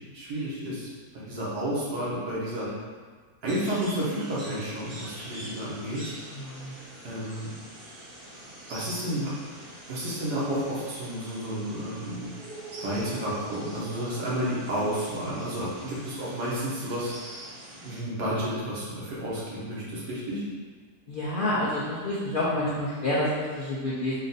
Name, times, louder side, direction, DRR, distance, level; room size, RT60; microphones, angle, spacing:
voice 1, 0.0-2.7 3.4-6.1 7.0-7.5 8.7-9.3 9.9-12.3 12.8-17.1 17.8-20.4, equal, 80° right, -7 dB, 1.7 m, -31 dB
sound 1, 3.5-18.0, right 1 dB, 55° right, 1.1 m, -44 dB
voice 2, 6.3-6.7 21.1-24.1, left 1 dB, 55° left, -9 dB, 0.6 m, -28 dB
4.2 x 2.5 x 3.9 m, 1.5 s
omnidirectional pair, 1.7 m